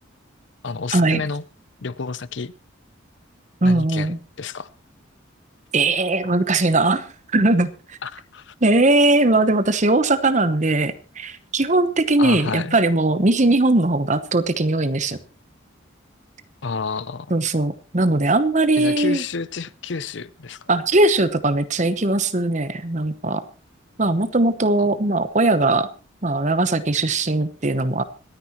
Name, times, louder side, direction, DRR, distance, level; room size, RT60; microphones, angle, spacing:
voice 1, 0.6-1.4 1.8-2.5 3.6-4.7 8.0-8.5 12.2-12.8 16.6-17.3 18.8-20.7 24.8-24.9, left 4 dB, 60° left, 17 dB, 0.6 m, -30 dB
voice 2, 3.6-4.2 5.7-8.0 8.6-15.2 17.3-19.2 20.7-23.4 24.0-25.9 26.2-28.0, right 2 dB, 35° right, 12 dB, 1.0 m, -19 dB
25.5 x 9.7 x 3.1 m, 0.36 s
head